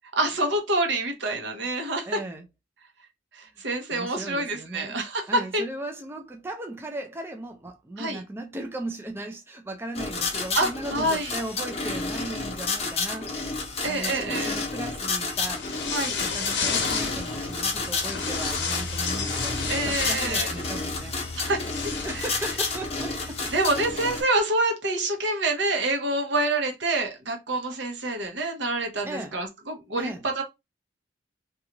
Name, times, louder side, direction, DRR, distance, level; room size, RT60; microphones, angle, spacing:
voice 1, 0.1-2.2 3.3-5.6 8.0-8.2 10.5-11.3 13.8-14.6 15.9-16.2 19.7-20.5 21.4-21.6 22.1-22.3 23.5-30.4, right 2 dB, 75° right, 0.8 m, -27 dB
voice 2, 2.1-2.4 3.9-5.0 5.3-13.3 13.8-15.6 16.2-19.6 19.8-21.2 22.0-23.5 23.8-23.9 29.0-29.4 30.0-30.2, right 2 dB, 15° right, 0.3 m, -37 dB
sound 1, 9.9-24.2, left 3 dB, 35° left, 0.7 m, -31 dB
sound 2, 15.4-24.0, left 4 dB, 75° left, 0.7 m, -32 dB
2.5 x 2.3 x 2.9 m
head